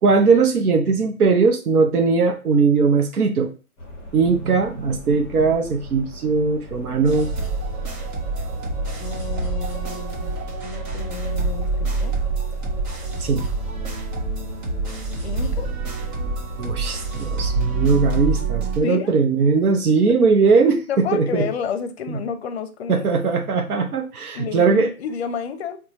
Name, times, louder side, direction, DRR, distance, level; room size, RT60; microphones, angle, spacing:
voice 1, 0.0-3.5 4.1-7.3 13.2-13.5 16.6-21.5 22.1-22.2 22.9-24.9, right 4 dB, 90° right, 5 dB, 0.7 m, -19 dB
sound 1, 3.8-18.5, equal, 5° left, 0.6 m, -38 dB
sound 2, 7.0-18.8, right 3 dB, 60° right, 1.2 m, -26 dB
voice 2, 9.0-12.2 15.2-15.7 18.8-19.1 20.9-23.1 24.3-25.8, left 6 dB, 45° left, 9 dB, 0.5 m, -30 dB
3.9 x 2.3 x 3.0 m, 0.35 s
hypercardioid pair, 145°, 43 cm